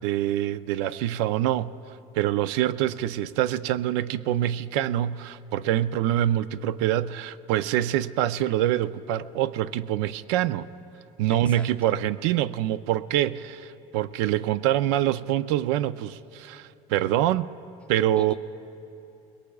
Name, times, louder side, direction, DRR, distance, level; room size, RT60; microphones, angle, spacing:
voice 1, 0.0-1.7 2.2-10.7 11.2-17.5 17.9-18.4, right 12 dB, 75° right, 16 dB, 0.4 m, -25 dB
voice 2, 11.3-11.9 18.1-18.4, left 3 dB, 10° left, 5 dB, 0.6 m, -43 dB
23.0 x 21.5 x 2.3 m, 2.9 s
cardioid pair, 160°, 16 cm